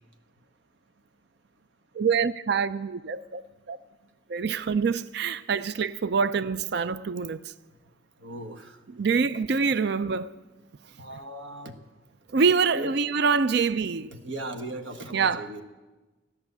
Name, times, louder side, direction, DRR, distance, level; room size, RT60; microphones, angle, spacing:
voice 1, 2.0-3.4 3.7-3.8 4.3-7.4 8.9-10.3 12.3-14.1 15.1-15.5, right 5 dB, 55° right, 0.4 m, -25 dB
voice 2, 8.2-8.8 11.0-11.7 12.7-12.9 14.1-15.6, right 2 dB, 75° right, 1.4 m, -37 dB
16.0 x 10.5 x 8.1 m
head